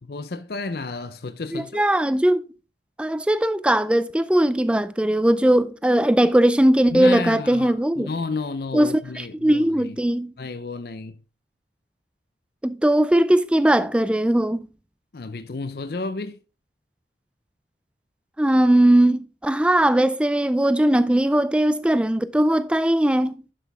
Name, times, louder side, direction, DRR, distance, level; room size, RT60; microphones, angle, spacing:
voice 1, 0.1-1.9 6.9-10.0 10.4-11.2 15.1-16.4, left 3 dB, 55° left, 0.5 m, -31 dB
voice 2, 1.5-2.5 3.0-8.1 8.7-10.3 12.6-14.6 18.4-23.4, right 1 dB, 5° right, 0.3 m, -19 dB
11.5 x 6.1 x 3.4 m
head